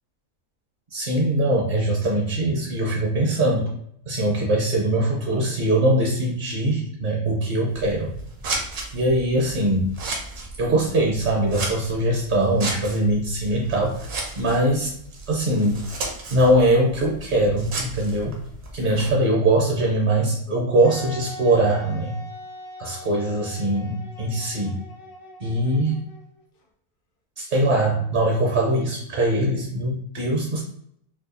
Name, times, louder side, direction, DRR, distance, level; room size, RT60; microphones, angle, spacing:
voice 1, 0.9-3.7 4.1-8.1 8.9-9.9 10.6-14.1 14.4-14.9 15.3-15.8 16.3-18.4 18.7-22.1 22.8-24.8 25.4-26.0 27.4-30.6, right 1 dB, 45° right, -2 dB, 0.7 m, -22 dB
Scissors, 7.7-19.1, right 2 dB, 65° right, 1.2 m, -35 dB
Wind instrument woodwind instrument, 20.8-26.4, left 1 dB, 65° left, 0.5 m, -41 dB
4.7 x 2.3 x 2.6 m, 0.68 s
omnidirectional pair, 1.6 m